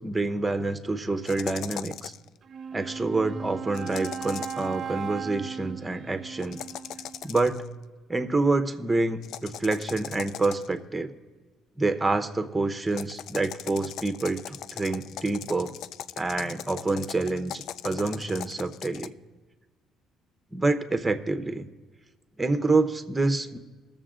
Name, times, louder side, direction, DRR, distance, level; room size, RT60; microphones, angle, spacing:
voice 1, 0.0-2.1 2.7-6.6 7.2-7.6 8.1-11.1 11.8-15.8 16.2-19.1 20.5-21.7 22.4-23.6, right 3 dB, 15° right, 8 dB, 0.9 m, -27 dB
sound 1, 1.3-2.3 3.7-4.7 6.4-7.7 9.2-10.8 12.9-19.1, left 10 dB, 70° left, 0.3 m, -40 dB
Wind instrument woodwind instrument, 2.4-7.4, right 7 dB, 45° right, 0.5 m, -37 dB
19.0 x 7.0 x 3.7 m, 1.3 s
cardioid pair, 100°, 0 cm